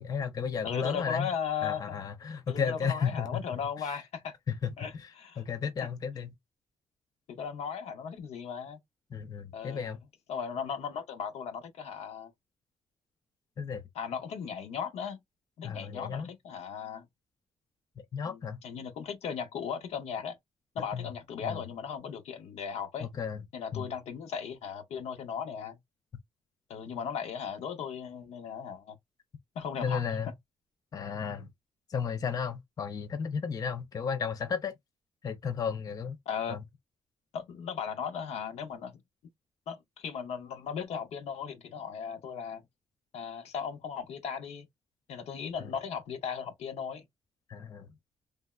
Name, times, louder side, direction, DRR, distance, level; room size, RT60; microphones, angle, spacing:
voice 1, 0.0-1.3 1.6-3.4 3.8-3.9 4.5-5.1 5.4-6.3 9.1-10.0 13.6-13.8 15.6-16.3 18.1-18.6 20.9-21.1 21.4-21.6 23.0-23.4 23.7-23.9 29.8-30.3 30.9-31.5 31.9-34.7 35.2-36.2 36.5-36.6 47.5-47.9, left 6 dB, 35° left, 0.4 m, -33 dB
voice 2, 0.6-2.0 2.5-4.3 4.8-5.4 7.3-8.8 9.5-9.9 10.3-12.3 13.9-15.2 15.6-17.1 18.2-20.4 20.7-23.1 23.5-25.8 26.7-29.0 29.5-30.0 36.3-36.6 37.3-39.0 39.7-42.6 43.1-44.7 45.1-47.1, left 7 dB, 80° left, 0.7 m, -37 dB
3.3 x 2.0 x 2.3 m
cardioid pair, 155°, 11 cm